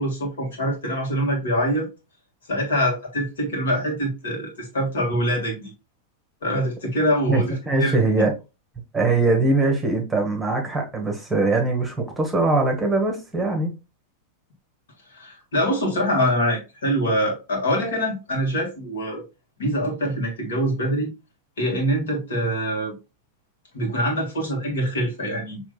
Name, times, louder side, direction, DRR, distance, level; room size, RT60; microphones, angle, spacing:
voice 1, 0.0-1.9 2.5-5.7 6.4-8.0 15.1-19.2 19.6-21.1 21.6-22.9 23.7-25.6, equal, 65° left, 1.8 m, -24 dB
voice 2, 7.3-8.3 8.9-13.7, right 3 dB, 10° right, 1.2 m, -22 dB
6.0 x 3.0 x 2.3 m
figure-of-eight pair, 90°, 0 cm